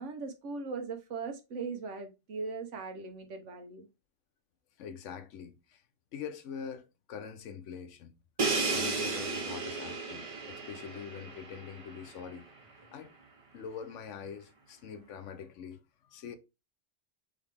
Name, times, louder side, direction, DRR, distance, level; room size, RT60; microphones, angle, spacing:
voice 1, 0.0-3.9, right 4 dB, 75° right, 1.3 m, -39 dB
voice 2, 4.8-5.8 6.1-8.2 8.7-12.5 12.9-13.1 13.5-16.4, left 7 dB, 80° left, 1.0 m, -44 dB
Crash cymbal, 8.4-12.2, right 3 dB, 35° right, 0.7 m, -34 dB
3.8 x 3.4 x 3.3 m
omnidirectional pair, 1.2 m